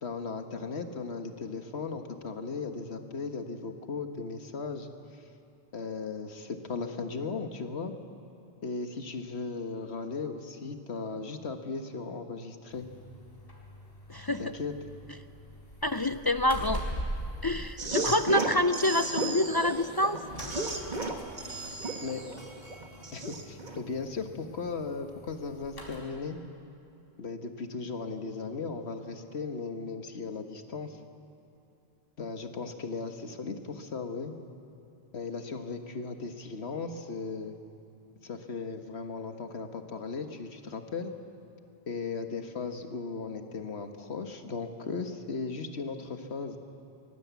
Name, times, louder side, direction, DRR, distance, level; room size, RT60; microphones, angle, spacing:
voice 1, 0.0-5.2 5.7-7.9 8.6-12.9 14.4-14.7 22.0-22.2 23.1-26.4 27.2-31.0 32.2-34.3 35.1-37.6 38.2-41.1 41.9-46.6, left 4 dB, 85° left, 6 dB, 1.7 m, -37 dB
sound 1, 12.7-26.0, equal, 65° left, 4.8 m, -43 dB
voice 2, 14.1-14.4 15.8-16.8 17.4-20.2, left 1 dB, 35° left, 9 dB, 0.4 m, -27 dB
sound 2, 17.8-23.8, right 2 dB, 45° right, 1.7 m, -34 dB
22.5 x 22.5 x 8.3 m, 2.8 s
omnidirectional pair, 1.1 m